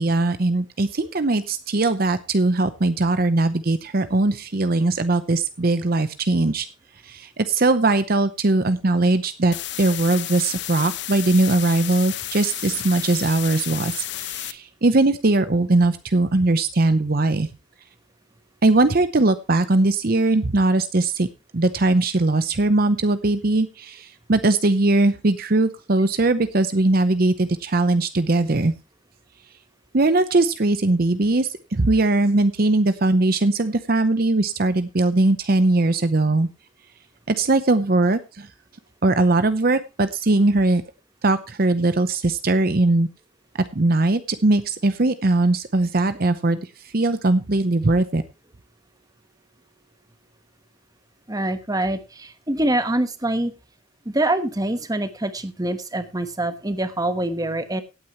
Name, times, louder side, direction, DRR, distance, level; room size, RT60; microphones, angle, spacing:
voice 1, 0.0-6.7 7.0-17.5 18.6-21.3 21.5-28.7 29.9-36.5 37.3-38.5 39.0-40.8 41.2-43.1 43.7-46.7 46.9-48.2, right 2 dB, 50° right, 12 dB, 0.8 m, -20 dB
sound 1, 9.5-14.5, left 13 dB, 60° left, 0.8 m, -32 dB
voice 2, 51.3-53.5 54.0-57.8, right 1 dB, 20° right, 10 dB, 1.2 m, -25 dB
17.0 x 9.0 x 3.0 m, 0.28 s
head